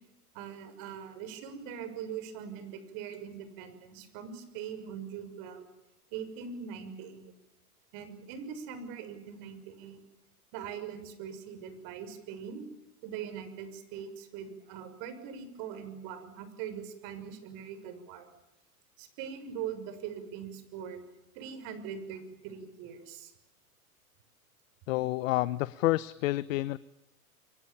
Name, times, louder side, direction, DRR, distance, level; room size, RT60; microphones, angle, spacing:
voice 1, 0.3-5.6 6.1-7.3 7.9-10.0 10.5-12.7 13.0-18.3 19.0-21.0 21.3-23.3, right 8 dB, 50° right, 10 dB, 6.4 m, -42 dB
voice 2, 24.9-26.8, left 17 dB, 60° left, 18 dB, 1.0 m, -29 dB
30.0 x 23.5 x 7.2 m, 0.90 s
hypercardioid pair, 105°, 45 cm